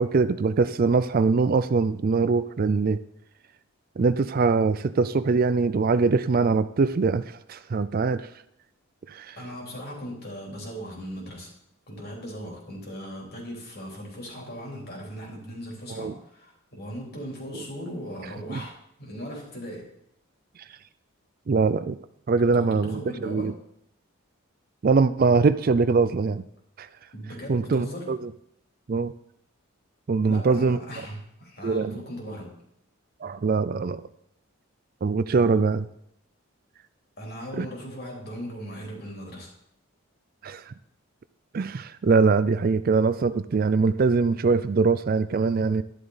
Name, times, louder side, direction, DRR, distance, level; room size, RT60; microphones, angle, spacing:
voice 1, 0.0-3.0 4.0-8.3 9.1-9.4 15.9-16.1 18.5-18.6 21.5-22.0 22.3-23.5 24.8-26.4 26.8-26.9 27.5-28.2 28.9-29.1 30.1-30.8 31.6-31.9 33.2-34.0 35.0-35.9 37.6-37.7 40.4-40.7 41.5-45.8, right 4 dB, 40° right, 14 dB, 0.4 m, -22 dB
voice 2, 9.4-11.5 11.9-19.9 22.5-23.6 27.1-28.1 30.2-32.6 37.2-39.5, equal, 45° left, -1 dB, 3.4 m, -38 dB
12.0 x 11.0 x 4.0 m, 0.74 s
head